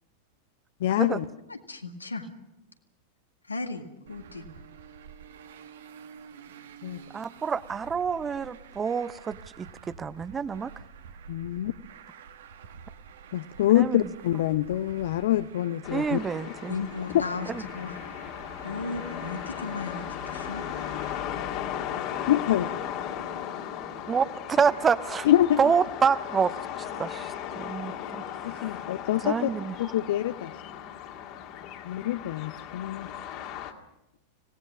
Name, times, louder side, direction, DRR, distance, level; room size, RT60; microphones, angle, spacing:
voice 1, 0.8-1.3 6.8-7.0 11.3-11.7 13.3-16.2 22.3-22.7 25.2-25.6 28.4-29.5 29.8-30.5 31.8-33.1, left 13 dB, 55° left, 13 dB, 0.6 m, -25 dB
voice 2, 1.5-2.3 3.4-4.6 16.7-18.3 18.6-20.6, left 4 dB, 80° left, 5 dB, 1.9 m, -36 dB
Traffic noise roadway noise, 4.1-21.2, right 7 dB, 60° right, 1.5 m, -49 dB
voice 3, 7.1-10.7 13.8-14.0 15.9-16.7 24.1-25.3 25.6-28.2 28.5-28.8 29.2-29.7, right 6 dB, 20° right, 17 dB, 0.7 m, -27 dB
sound 1, 15.8-33.7, left 10 dB, 40° left, 2.1 m, -37 dB
25.5 x 18.5 x 6.2 m, 0.92 s
figure-of-eight pair, 90°, 0 cm